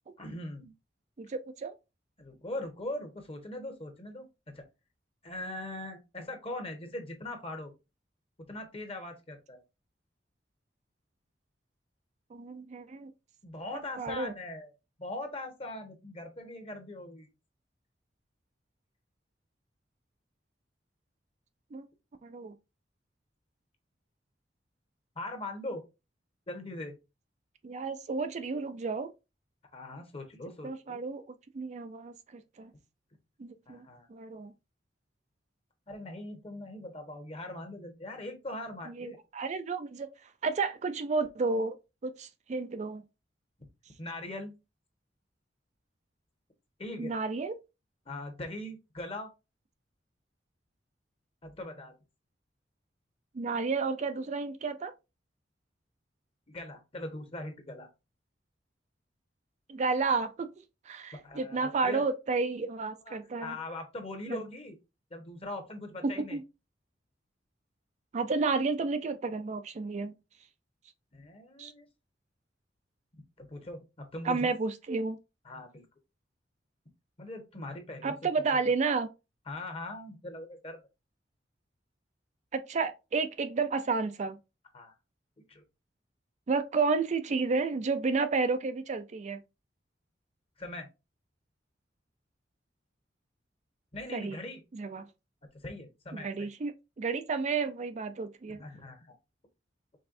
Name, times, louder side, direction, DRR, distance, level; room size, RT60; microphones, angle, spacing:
voice 1, 0.2-0.7 2.2-4.6 5.2-7.7 8.5-9.6 13.4-14.7 15.0-17.3 25.1-25.8 26.5-27.0 29.7-31.0 33.7-34.1 35.9-39.2 44.0-44.5 46.8-47.1 48.1-49.3 51.4-51.9 56.5-57.9 61.1-62.0 63.0-64.8 65.1-66.4 71.1-71.9 73.4-74.5 75.4-75.8 77.2-78.2 78.5-78.6 79.5-80.8 84.7-84.9 85.5-85.6 90.6-90.9 93.9-94.6 95.5-96.5 98.5-99.2, left 1 dB, 35° left, 1.2 m, -41 dB
voice 2, 1.2-1.7 12.3-13.1 14.0-14.3 21.7-21.9 22.2-22.5 27.6-29.1 30.6-31.2 31.5-32.7 33.4-33.8 34.1-34.5 38.9-40.1 40.4-41.8 42.0-43.0 47.0-47.5 53.3-54.9 59.7-60.5 60.9-63.6 64.3-64.4 66.0-66.4 68.1-70.1 71.6-71.7 74.2-75.2 78.0-79.1 82.5-84.4 86.5-89.4 94.1-94.4 94.7-95.1 96.1-98.6, right 4 dB, 40° right, 0.4 m, -31 dB
5.3 x 3.4 x 2.6 m
head